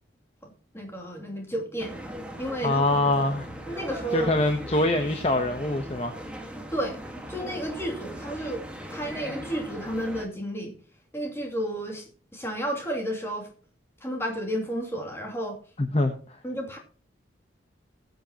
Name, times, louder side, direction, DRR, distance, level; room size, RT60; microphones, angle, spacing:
voice 1, 0.4-2.0 2.4-3.0 3.7-4.3 6.7-7.0 7.3-10.7 11.1-13.5 14.0-15.6 16.4-16.8, right 1 dB, 15° left, 0 dB, 2.7 m, -32 dB
sound 1, 1.8-10.2, equal, 5° right, 1.6 m, -39 dB
voice 2, 2.6-3.5 4.1-6.2 15.8-16.1, left 2 dB, 30° left, 6 dB, 0.9 m, -24 dB
19.5 x 7.9 x 2.9 m, 0.42 s
head